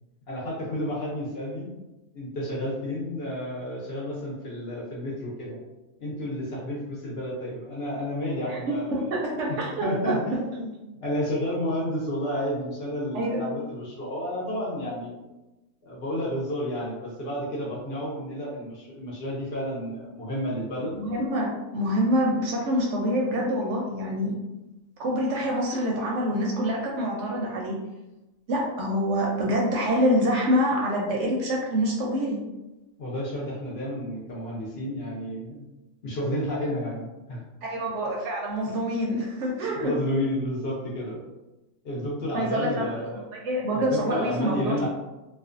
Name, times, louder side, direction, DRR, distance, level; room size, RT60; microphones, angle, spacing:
voice 1, 0.3-1.7 2.1-5.6 6.0-9.0 9.8-15.1 15.8-21.0 33.0-35.6 36.0-37.4 39.8-41.2 41.8-43.2 43.7-44.9, equal, 60° left, -5 dB, 0.7 m, -31 dB
voice 2, 8.5-10.4 13.1-13.4 20.9-24.4 25.0-27.8 28.5-32.4 37.6-39.9 42.3-42.9 43.3-44.9, equal, 70° right, -2 dB, 0.8 m, -26 dB
2.4 x 2.2 x 2.4 m, 1.0 s
omnidirectional pair, 1.4 m